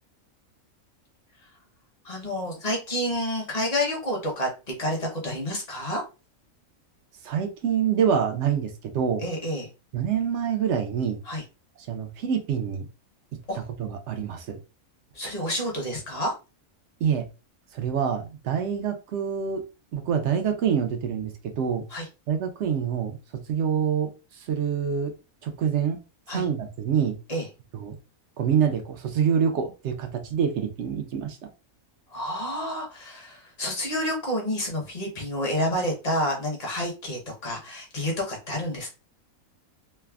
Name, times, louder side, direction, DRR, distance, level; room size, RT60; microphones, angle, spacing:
voice 1, 2.0-4.5 4.8-6.0 9.2-9.7 11.3-11.4 13.5-13.6 15.1-16.3 21.9-22.0 26.3-26.4 27.3-27.5 32.1-38.9, left 1 dB, 35° left, 0 dB, 0.7 m, -29 dB
voice 2, 7.2-9.3 9.9-11.2 11.9-12.9 13.5-14.6 17.0-17.2 17.7-19.6 19.9-21.8 22.3-23.2 23.5-24.1 24.4-25.1 25.4-26.0 26.3-27.2 27.7-27.9 28.4-31.4, right 7 dB, 65° right, 6 dB, 0.8 m, -26 dB
3.2 x 2.0 x 2.3 m, 0.30 s
omnidirectional pair, 1.5 m